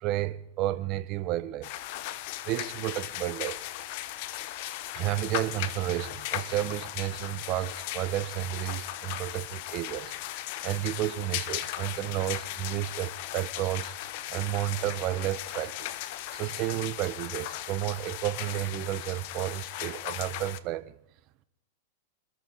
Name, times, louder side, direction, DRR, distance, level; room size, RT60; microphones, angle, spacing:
voice 1, 0.0-1.7 2.4-3.6 4.9-10.2 10.6-13.9 14.3-15.9 16.3-20.9, right 15 dB, 45° right, 0.8 m, -31 dB
sound 1, 1.6-20.6, left 14 dB, 55° left, 1.0 m, -37 dB
25.5 x 13.5 x 4.1 m
hypercardioid pair, 105°, 0 cm